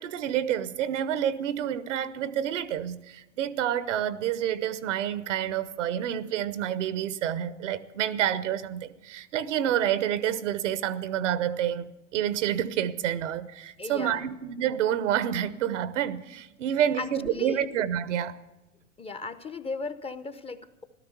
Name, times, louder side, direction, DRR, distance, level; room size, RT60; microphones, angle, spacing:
voice 1, 0.0-18.4, right 10 dB, 75° right, 1.0 m, -28 dB
voice 2, 13.8-14.4 17.0-17.6 19.0-20.8, left 4 dB, 15° left, 0.8 m, -37 dB
14.5 x 12.5 x 6.9 m
hypercardioid pair, 105°, 37 cm